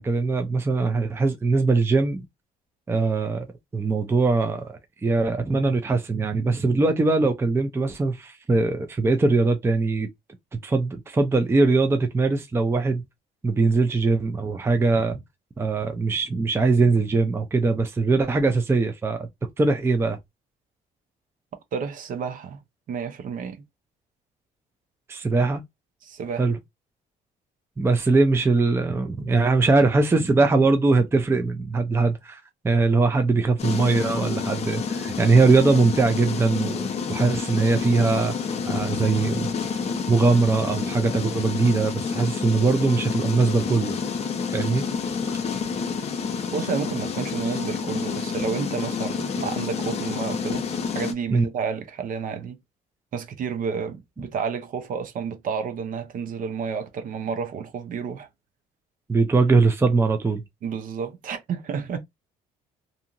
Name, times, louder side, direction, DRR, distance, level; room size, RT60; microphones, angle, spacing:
voice 1, 0.0-2.3 2.9-3.5 3.7-10.1 10.6-13.0 13.4-15.2 15.6-19.3 19.6-20.2 25.1-25.6 26.4-26.6 27.8-38.3 38.7-39.5 40.1-44.0 44.5-44.9 45.3-45.4 51.3-51.5 59.1-60.4, right 3 dB, 15° right, 0.5 m, -21 dB
voice 2, 21.7-22.6 22.9-23.6 26.0-26.5 46.5-50.7 50.9-52.6 53.1-58.3 60.6-62.0, right 6 dB, 55° right, 0.7 m, -30 dB
sound 1, 33.6-51.1, left 5 dB, 40° left, 0.6 m, -29 dB
2.7 x 2.4 x 2.8 m
cardioid pair, 110°, 17 cm